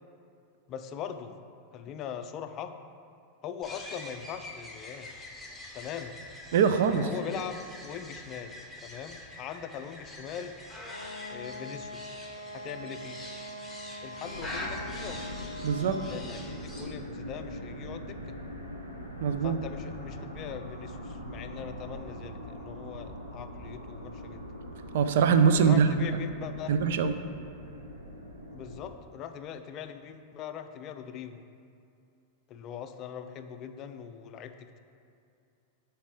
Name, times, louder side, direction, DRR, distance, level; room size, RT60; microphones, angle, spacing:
voice 1, 0.7-1.4 1.7-2.7 3.4-5.1 5.7-6.1 6.9-8.5 8.8-10.5 11.3-12.2 12.5-13.2 14.0-15.2 16.1-18.4 19.4-24.4 25.6-26.8 28.5-31.4 32.5-34.8, left 8 dB, 35° left, 8 dB, 0.4 m, -41 dB
sound 1, 3.6-16.9, left 1 dB, ahead, 1.1 m, -45 dB
voice 2, 6.5-7.1 15.6-16.0 19.2-19.6 24.9-26.0 26.7-27.2, right 6 dB, 55° right, 9 dB, 0.4 m, -23 dB
Wind instrument woodwind instrument, 10.8-16.5, left 1 dB, 85° left, 0.6 m, -43 dB
sound 2, 14.2-28.9, equal, 85° right, 1.0 m, -42 dB
11.0 x 4.3 x 3.7 m, 2.6 s
figure-of-eight pair, 90°, 0 cm